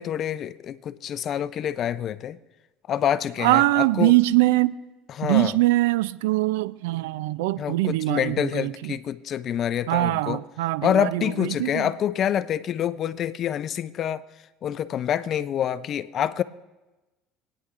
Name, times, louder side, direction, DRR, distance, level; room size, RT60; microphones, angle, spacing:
voice 1, 0.0-2.4 2.9-4.1 5.2-5.5 7.6-10.4 10.8-14.2 14.6-16.4, left 9 dB, 50° left, 0.5 m, -27 dB
voice 2, 3.4-4.8 5.2-8.9 9.9-11.9, right 18 dB, 90° right, 0.3 m, -22 dB
27.5 x 9.6 x 2.5 m
supercardioid pair, 105°, 0 cm